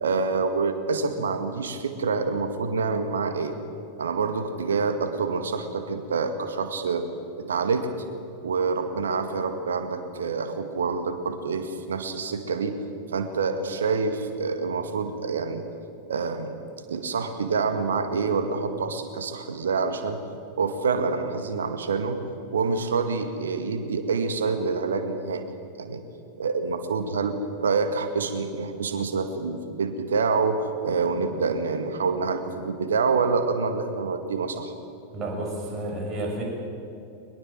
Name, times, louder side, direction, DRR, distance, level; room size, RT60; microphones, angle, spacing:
voice 1, 0.0-3.6 4.0-7.1 7.4-7.9 8.4-12.8 13.1-15.6 16.1-16.6 16.9-20.2 20.6-22.2 22.5-25.4 25.8-26.0 26.4-34.7, right 4 dB, 65° right, 8 dB, 2.1 m, -27 dB
voice 2, 35.1-36.5, right 1 dB, 25° right, -1 dB, 7.2 m, -31 dB
22.5 x 21.5 x 7.7 m, 2.7 s
figure-of-eight pair, 90°, 0 cm